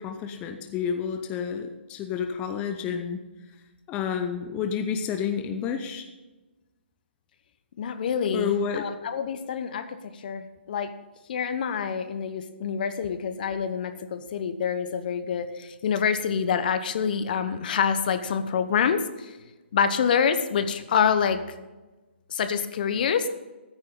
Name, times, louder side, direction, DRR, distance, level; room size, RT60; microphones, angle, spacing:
voice 1, 0.0-3.3 3.9-6.1 8.3-8.8, left 7 dB, 20° left, 6 dB, 0.8 m, -30 dB
voice 2, 7.8-9.9 10.1-10.9 11.3-19.3 19.7-21.4 22.3-23.3, left 7 dB, 50° left, 10 dB, 1.0 m, -26 dB
14.0 x 9.5 x 3.9 m, 1.2 s
hypercardioid pair, 145°, 6 cm